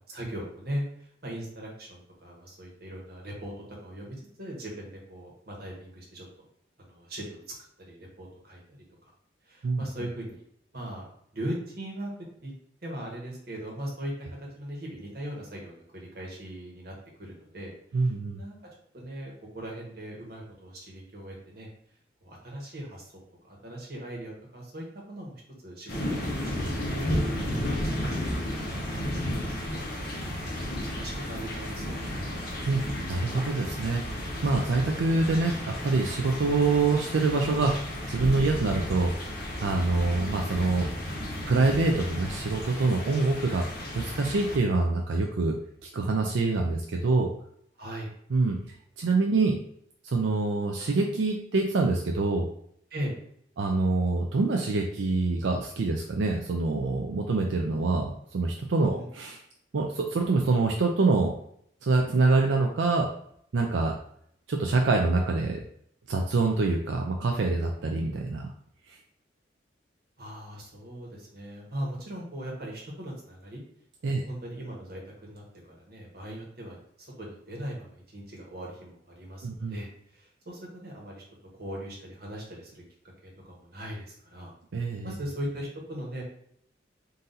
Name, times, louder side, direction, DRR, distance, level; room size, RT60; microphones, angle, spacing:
voice 1, 0.1-3.5 3.8-6.3 6.8-7.4 7.8-9.1 9.5-10.4 10.7-11.1 11.3-12.1 12.4-12.5 12.8-18.6 18.9-21.7 22.2-29.4 29.7-30.1 30.4-32.3 47.8-48.1 52.9-53.1 58.8-59.1 70.2-73.6 74.0-75.4 75.8-81.2 81.6-82.8 83.2-84.5 85.0-86.2, right 1 dB, 55° right, -2 dB, 1.3 m, -39 dB
voice 2, 17.9-18.4 32.7-32.8 33.1-40.9 41.5-43.7 43.9-45.6 45.8-47.3 48.3-48.6 49.0-49.6 50.0-52.5 53.6-59.4 59.7-61.3 61.8-63.1 63.5-63.9 64.5-65.6 66.1-68.5 68.9-69.0 74.0-74.2 79.4-79.8 84.7-85.1, right 3 dB, 85° right, 2 dB, 0.5 m, -25 dB
sound 1, 25.9-44.6, equal, 55° left, 1.1 m, -33 dB
4.0 x 2.6 x 3.9 m, 0.68 s
head